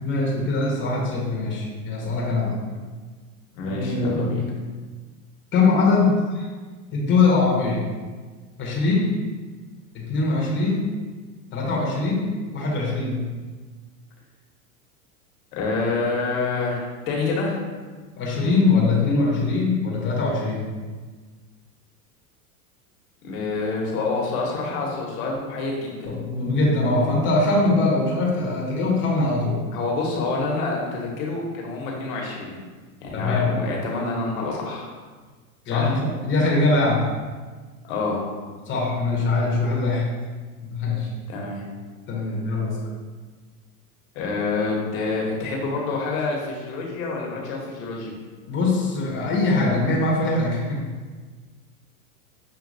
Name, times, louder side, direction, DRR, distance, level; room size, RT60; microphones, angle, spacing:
voice 1, 0.0-2.6 3.6-4.3 5.5-6.5 6.9-7.8 8.6-9.1 9.9-10.9 11.5-13.2 18.2-20.6 26.0-29.6 33.1-33.5 35.7-37.0 38.7-40.1 40.7-41.1 42.1-42.8 48.5-50.8, left 3 dB, 25° left, -4 dB, 1.1 m, -22 dB
voice 2, 3.5-4.4 15.5-17.6 23.2-26.1 29.7-32.6 33.0-34.9 35.7-35.9 37.8-38.2 41.3-41.6 44.1-48.1, left 3 dB, 65° left, -2 dB, 1.3 m, -27 dB
6.3 x 2.6 x 2.7 m, 1.4 s
hypercardioid pair, 110°, 44 cm